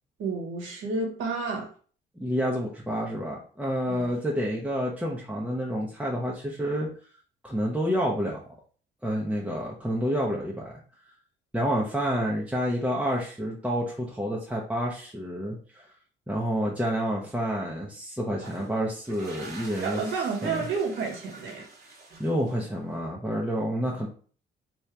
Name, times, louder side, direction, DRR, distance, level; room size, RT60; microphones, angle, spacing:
voice 1, 0.2-1.7 3.9-4.1 19.8-21.7, right 4 dB, 80° right, 1 dB, 1.4 m, -30 dB
voice 2, 2.2-6.9 7.4-8.4 9.0-10.7 11.5-15.9 16.3-20.0 20.4-20.7 22.2-24.1, equal, 5° right, -3 dB, 0.8 m, -29 dB
sound 1, 18.3-22.9, right 3 dB, 50° right, 1.3 m, -46 dB
3.5 x 2.9 x 3.3 m, 0.42 s
cardioid pair, 90°, 20 cm